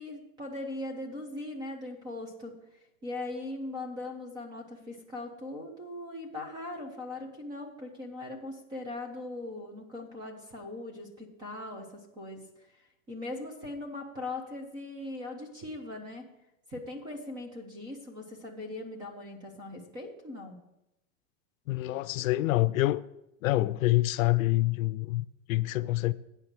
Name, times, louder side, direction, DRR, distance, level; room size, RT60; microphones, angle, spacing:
voice 1, 0.0-2.5 3.0-12.5 12.8-16.3 16.7-20.6, left 2 dB, 10° right, 0.4 m, -40 dB
voice 2, 21.7-23.0 23.4-26.1, left 17 dB, 75° left, 0.5 m, -26 dB
8.8 x 5.9 x 6.4 m
supercardioid pair, 170°, 41 cm